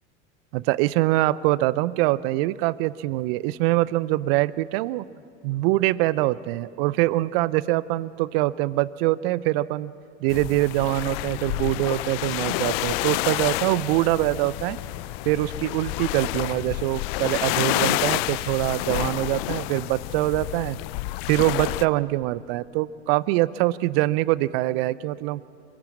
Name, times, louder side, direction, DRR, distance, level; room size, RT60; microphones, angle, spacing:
voice 1, 0.5-5.0 5.4-9.9 10.2-14.8 15.3-20.8 21.3-25.4, right 17 dB, 60° right, 19 dB, 0.7 m, -24 dB
sound 1, 10.3-21.9, left 19 dB, 60° left, 0.7 m, -29 dB
28.5 x 15.5 x 7.4 m, 2.6 s
hypercardioid pair, 75°, 34 cm